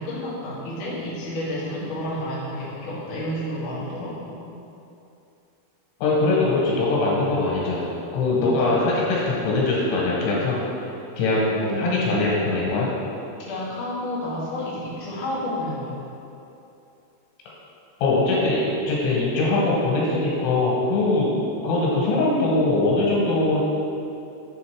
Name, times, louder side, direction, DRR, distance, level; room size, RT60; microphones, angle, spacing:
voice 1, 0.0-4.4 8.4-8.8 11.5-12.1 13.4-15.9 21.2-21.3, left 1 dB, 65° left, -8 dB, 1.2 m, -31 dB
voice 2, 6.0-10.6 11.2-12.9 18.0-21.3 21.6-23.6, left 2 dB, 90° left, -5 dB, 3.4 m, -22 dB
7.3 x 3.7 x 4.7 m, 2.8 s
omnidirectional pair, 4.7 m